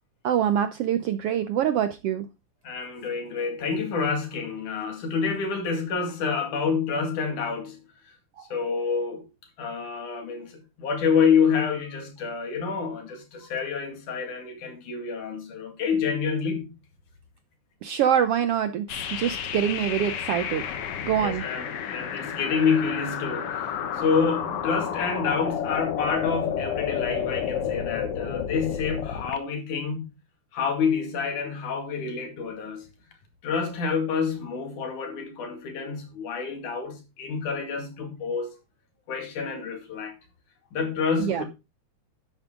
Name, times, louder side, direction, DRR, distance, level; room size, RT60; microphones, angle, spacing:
voice 1, 0.2-2.3 8.4-8.5 17.8-20.6 21.0-21.4 41.2-41.4, right 9 dB, 75° right, 1.4 m, -25 dB
voice 2, 2.6-7.8 8.5-9.3 9.6-10.5 10.8-16.7 21.2-30.0 30.5-32.9 33.4-38.5 39.1-40.1 40.7-41.4, left 5 dB, 80° left, 3.7 m, -28 dB
sound 1, 18.9-29.4, left 8 dB, 60° left, 1.8 m, -31 dB
11.0 x 8.4 x 3.7 m
omnidirectional pair, 3.5 m